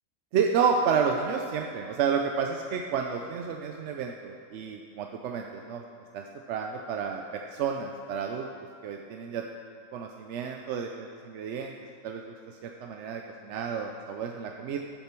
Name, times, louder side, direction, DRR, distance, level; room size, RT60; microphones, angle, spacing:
voice 1, 0.3-5.8 6.1-8.5 8.8-9.4 9.9-11.7 12.0-12.3 12.6-14.8, right 6 dB, 65° right, 3 dB, 0.8 m, -30 dB
11.5 x 6.8 x 4.4 m, 2.4 s
omnidirectional pair, 1.5 m